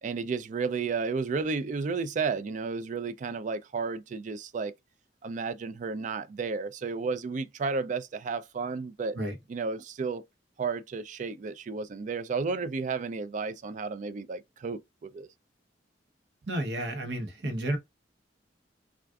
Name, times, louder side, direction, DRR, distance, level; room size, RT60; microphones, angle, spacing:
voice 1, 0.0-4.7 5.2-9.2 9.5-10.2 10.6-15.3, right 4 dB, 45° right, 0.3 m, -32 dB
voice 2, 16.5-17.8, right 1 dB, 70° right, 0.9 m, -31 dB
3.5 x 2.4 x 2.3 m
head